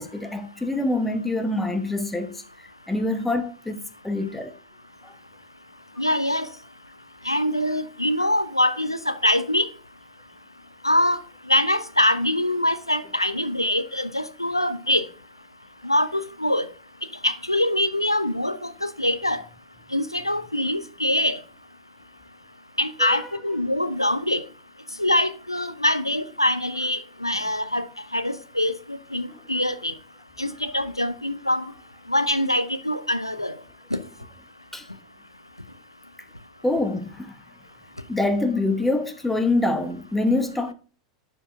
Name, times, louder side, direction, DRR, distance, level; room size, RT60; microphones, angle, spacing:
voice 1, 0.0-2.4 2.9-4.5 5.0-5.1 23.0-23.2 34.7-34.9 36.6-37.3 38.1-40.7, left 2 dB, 5° left, 1.1 m, -25 dB
voice 2, 6.0-6.5 7.3-9.7 10.8-11.2 11.5-15.0 15.8-16.7 17.2-19.4 19.9-21.4 22.8-24.4 25.0-27.8 28.1-29.9 30.4-31.7 32.1-33.5, left 1 dB, 90° left, 0.7 m, -24 dB
10.5 x 5.4 x 3.5 m
figure-of-eight pair, 90°, 2 cm